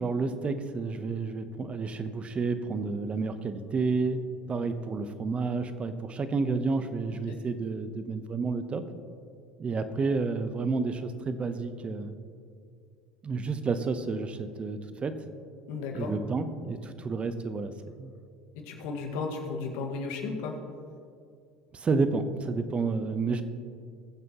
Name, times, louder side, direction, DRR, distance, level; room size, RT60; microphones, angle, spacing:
voice 1, 0.0-4.2 4.5-8.8 9.6-12.1 13.2-15.1 15.9-17.7 18.0-18.2 21.7-23.4, right 4 dB, 30° right, 11 dB, 0.9 m, -30 dB
voice 2, 15.7-16.1 18.5-20.6, left 4 dB, 70° left, 2 dB, 1.8 m, -34 dB
20.5 x 7.6 x 3.0 m, 2.3 s
hypercardioid pair, 80°, 4 cm